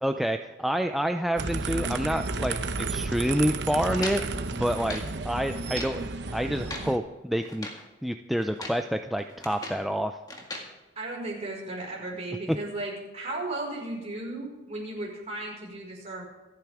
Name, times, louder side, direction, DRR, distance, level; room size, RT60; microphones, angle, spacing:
voice 1, 0.0-2.6 2.9-4.2 4.5-7.7 8.0-10.2, equal, ahead, 5 dB, 0.4 m, -28 dB
sound 1, 1.4-7.0, right 3 dB, 65° right, 0.8 m, -32 dB
sound 2, 4.0-5.1 5.6-6.0 6.5-6.9 7.4-7.9 8.4-8.9 9.2-9.9 10.3-10.7, left 2 dB, 20° left, 2.0 m, -39 dB
voice 2, 10.9-16.2, right 2 dB, 35° right, -2 dB, 5.0 m, -35 dB
26.5 x 9.2 x 3.6 m, 1.2 s
head